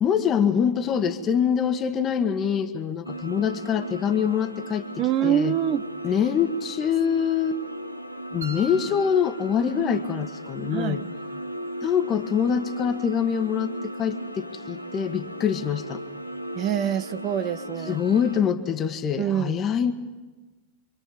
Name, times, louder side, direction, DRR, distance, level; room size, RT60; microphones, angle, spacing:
voice 1, 0.0-4.8 5.2-5.6 6.0-7.6 8.3-11.0 11.8-16.0 17.9-19.9, left 8 dB, 30° left, 9 dB, 1.6 m, -24 dB
sound 1, 3.0-18.4, right 1 dB, 90° right, 1.1 m, -36 dB
voice 2, 5.0-5.9 10.7-11.1 16.5-18.0 19.2-19.6, right 10 dB, 35° right, 11 dB, 0.9 m, -25 dB
sound 2, 8.4-10.4, equal, 70° right, 4.0 m, -42 dB
27.5 x 25.0 x 5.4 m, 1.3 s
figure-of-eight pair, 90°, 0 cm